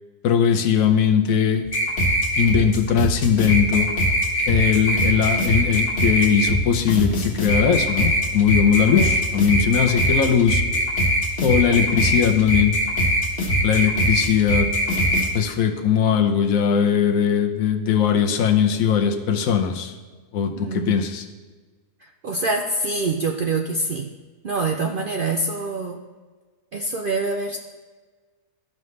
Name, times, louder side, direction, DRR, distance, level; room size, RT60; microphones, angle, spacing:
voice 1, 0.2-1.6 2.4-3.9 4.5-10.6 11.4-12.8 13.6-14.7 15.3-19.9 20.3-21.3, left 7 dB, 65° left, 4 dB, 1.2 m, -20 dB
sound 1, 1.7-15.3, equal, 50° left, 1.6 m, -21 dB
voice 2, 20.6-21.0 22.2-24.1 24.4-26.0 26.7-27.6, right 3 dB, 75° right, 3 dB, 0.5 m, -25 dB
13.5 x 5.4 x 3.2 m, 1.4 s
omnidirectional pair, 1.6 m